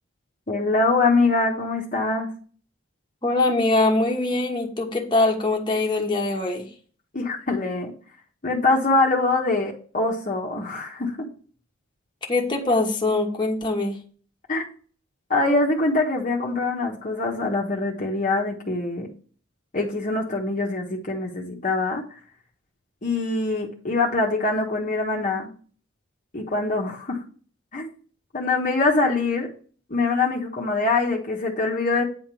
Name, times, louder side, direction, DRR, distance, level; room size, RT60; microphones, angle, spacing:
voice 1, 0.5-2.3 7.1-7.9 8.4-11.3 14.5-14.7 15.3-19.1 19.7-22.0 23.0-25.5 26.3-27.2 27.7-27.9 28.3-29.5 29.9-32.0, left 3 dB, 40° left, -2 dB, 1.2 m, -23 dB
voice 2, 3.2-6.7 12.3-14.0, left 2 dB, 25° left, 0 dB, 1.4 m, -22 dB
9.5 x 3.6 x 6.0 m, 0.42 s
head